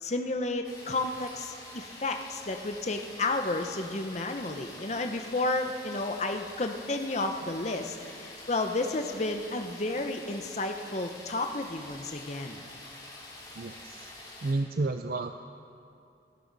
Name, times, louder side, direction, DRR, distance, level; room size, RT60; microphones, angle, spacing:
voice 1, 0.0-12.6, left 2 dB, 35° left, 5 dB, 0.8 m, -32 dB
sound 1, 0.6-14.5, left 2 dB, 20° left, 3.3 m, -47 dB
voice 2, 13.5-14.1 14.4-15.4, right 3 dB, 55° right, 7 dB, 0.5 m, -31 dB
28.0 x 11.5 x 4.0 m, 2.5 s
head